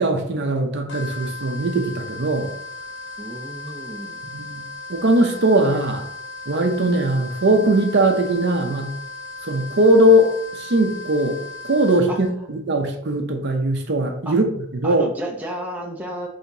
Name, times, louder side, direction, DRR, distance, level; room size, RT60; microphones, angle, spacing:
voice 1, 0.0-2.5 4.3-4.6 4.9-6.0 6.5-8.9 9.5-11.4 11.6-14.4 14.8-15.0, right 1 dB, 55° right, 4 dB, 0.6 m, -20 dB
sound 1, 0.9-12.3, left 3 dB, 55° left, 1.1 m, -36 dB
voice 2, 3.2-4.3 12.1-12.5 14.3-14.4 14.8-16.3, right 1 dB, 10° right, -2 dB, 0.6 m, -32 dB
5.6 x 3.5 x 2.7 m, 0.69 s
head